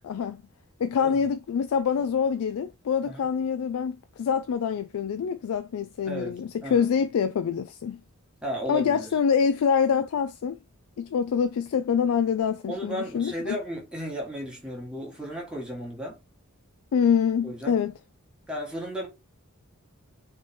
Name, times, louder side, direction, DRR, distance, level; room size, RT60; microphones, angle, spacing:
voice 1, 0.0-0.4 0.8-8.0 8.7-10.6 11.0-13.6 16.9-17.9, left 7 dB, 75° left, 0.3 m, -25 dB
voice 2, 6.0-6.9 8.4-9.1 12.7-16.2 17.4-17.8 18.5-19.1, equal, 5° right, 1.5 m, -34 dB
3.3 x 3.2 x 4.2 m
head